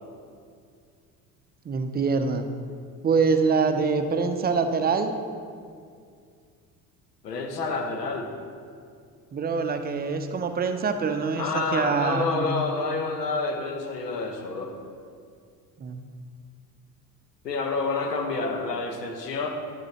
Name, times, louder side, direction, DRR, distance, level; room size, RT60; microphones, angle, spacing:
voice 1, 1.7-2.4 3.0-5.1 9.3-12.5 15.8-16.0, right 5 dB, 20° right, 7 dB, 0.6 m, -25 dB
voice 2, 7.2-8.3 11.4-14.7 17.4-19.5, left 3 dB, 80° left, 3 dB, 1.1 m, -28 dB
11.5 x 8.5 x 3.1 m, 2.2 s
figure-of-eight pair, 60°, 48 cm